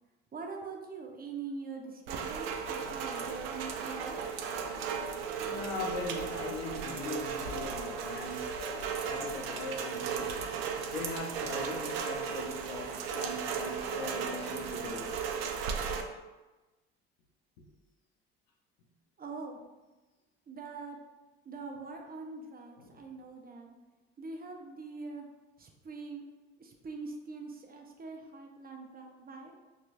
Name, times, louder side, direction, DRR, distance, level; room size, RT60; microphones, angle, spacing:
voice 1, 0.3-4.2 19.2-19.6 20.5-21.0 21.4-23.7 24.2-25.3 25.6-26.2 26.6-29.5, right 4 dB, 30° right, 2 dB, 0.7 m, -43 dB
Rain, 2.1-16.0, right 6 dB, 80° right, 0.5 m, -36 dB
voice 2, 5.0-8.6 9.0-10.6 10.9-15.2 22.8-23.0, left 3 dB, 80° left, 0 dB, 0.8 m, -40 dB
4.2 x 3.1 x 2.5 m, 1.2 s
hypercardioid pair, 60°, 30 cm